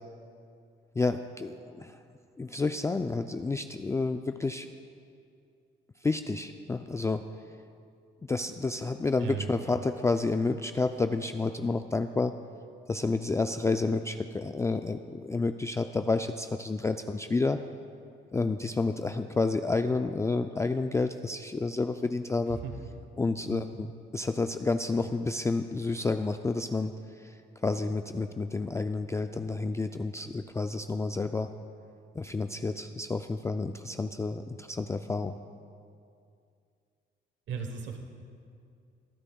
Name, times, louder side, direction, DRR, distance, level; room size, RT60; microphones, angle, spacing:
voice 1, 1.0-2.0 2.4-4.7 6.0-7.2 8.3-12.3 12.9-17.6 18.3-22.6 23.2-23.9 24.1-26.9 27.2-27.3 27.6-31.5 32.2-35.3, left 3 dB, 15° left, 7 dB, 0.3 m, -30 dB
voice 2, 9.2-9.5 22.5-22.8 23.5-23.8 37.5-38.0, right 6 dB, 70° right, 4 dB, 1.1 m, -36 dB
20.5 x 9.8 x 2.3 m, 2.4 s
cardioid pair, 90°, 20 cm